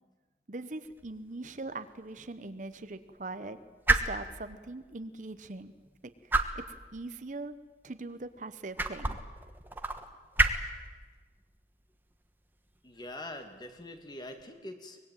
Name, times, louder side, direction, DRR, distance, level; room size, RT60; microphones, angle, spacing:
voice 1, 0.5-3.6 3.9-5.7 6.2-7.6 7.8-9.2, right 2 dB, 45° right, 11 dB, 0.9 m, -41 dB
sound 1, 0.8-14.4, right 2 dB, 10° right, 1.2 m, -35 dB
voice 2, 12.8-15.0, left 1 dB, 25° left, 6 dB, 2.1 m, -43 dB
24.0 x 20.0 x 9.0 m, 1.4 s
head